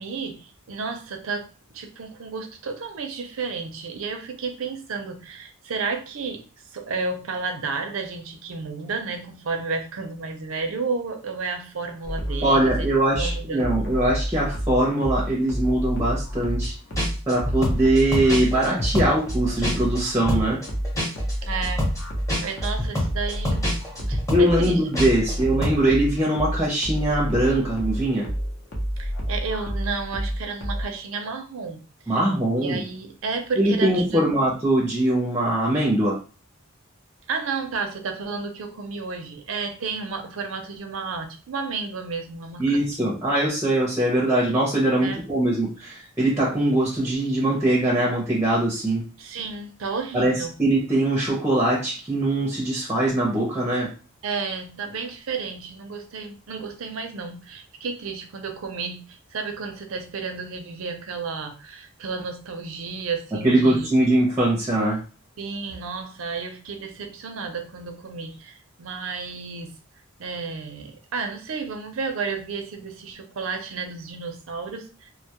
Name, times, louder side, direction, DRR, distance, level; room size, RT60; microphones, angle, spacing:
voice 1, 0.0-1.5 1.7-13.8 21.4-21.9 22.4-23.7 24.0-24.8 25.1-25.5 29.0-31.8 32.1-32.2 32.6-34.2 37.3-43.2 45.0-45.2 49.2-50.5 54.2-63.9 65.4-69.8 70.2-75.1, right 4 dB, 75° right, 6 dB, 0.5 m, -32 dB
sound 1, 12.0-30.9, equal, 55° left, 0.7 m, -29 dB
voice 2, 12.4-16.7 17.3-20.6 24.3-28.3 32.1-32.8 33.6-36.2 42.6-49.0 50.1-53.9 63.4-65.0, right 1 dB, 10° right, -3 dB, 0.6 m, -22 dB
sound 2, 16.6-16.7 16.9-20.0 20.3-25.3 25.6-25.8, left 1 dB, 15° left, 0.8 m, -27 dB
2.2 x 2.0 x 2.8 m, 0.35 s
head